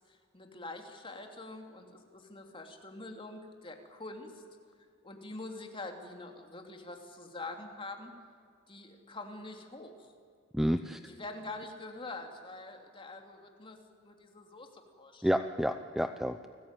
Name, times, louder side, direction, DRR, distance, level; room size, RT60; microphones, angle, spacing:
voice 1, 0.1-4.4 5.0-8.1 8.7-10.1 11.0-13.8 14.0-15.3, left 2 dB, 25° left, 3 dB, 3.1 m, -45 dB
voice 2, 10.5-11.0 15.2-16.5, equal, ahead, 8 dB, 0.7 m, -30 dB
29.5 x 19.5 x 9.3 m, 2.2 s
head